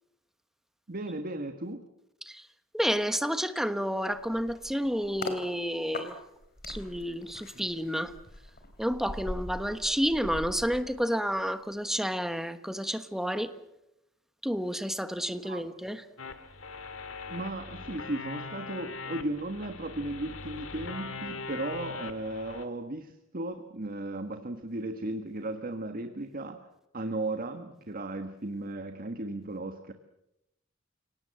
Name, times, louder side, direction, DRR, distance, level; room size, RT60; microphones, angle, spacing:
voice 1, 0.9-1.8 7.5-7.7 15.4-15.6 17.3-26.7 26.9-29.9, right 2 dB, 45° right, 1.5 m, -36 dB
voice 2, 2.7-6.2 6.7-8.2 8.8-13.5 14.4-16.0, equal, ahead, 1.3 m, -30 dB
sound 1, 4.1-5.4 5.9-11.5 11.8-12.1, left 2 dB, 50° left, 3.7 m, -42 dB
sound 2, 16.2-22.7, left 4 dB, 70° left, 2.0 m, -41 dB
29.5 x 18.5 x 7.7 m
head